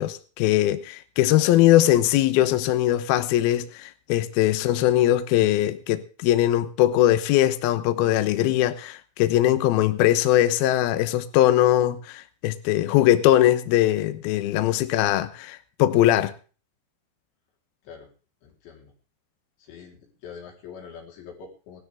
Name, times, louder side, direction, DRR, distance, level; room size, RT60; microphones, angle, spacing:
voice 1, 0.0-16.3, left 13 dB, 80° left, 2.2 m, -21 dB
voice 2, 18.4-18.9 19.6-21.8, left 6 dB, 65° left, 6.1 m, -44 dB
19.0 x 13.0 x 3.6 m
omnidirectional pair, 5.7 m